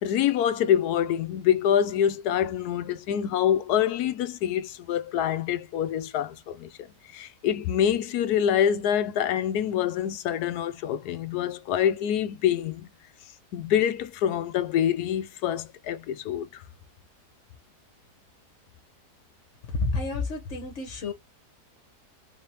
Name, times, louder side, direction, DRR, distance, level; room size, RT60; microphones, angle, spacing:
voice 1, 0.0-6.9 7.1-12.9 13.5-16.6, left 9 dB, 75° left, 1.1 m, -26 dB
voice 2, 19.7-21.1, left 3 dB, 50° left, 1.3 m, -29 dB
3.7 x 3.3 x 2.8 m
omnidirectional pair, 1.7 m